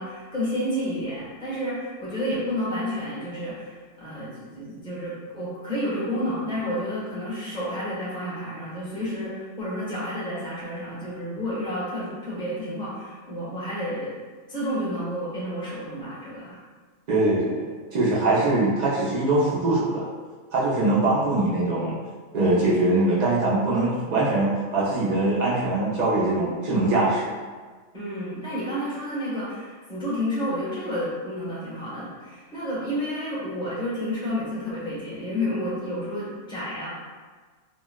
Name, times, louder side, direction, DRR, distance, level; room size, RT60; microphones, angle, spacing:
voice 1, 0.0-14.1 14.5-16.6 27.9-36.9, equal, 5° left, -9 dB, 0.8 m, -30 dB
voice 2, 17.1-20.1 20.5-22.0 22.3-27.3, right 2 dB, 75° right, -6 dB, 0.4 m, -22 dB
3.9 x 2.0 x 2.3 m, 1.4 s
omnidirectional pair, 1.4 m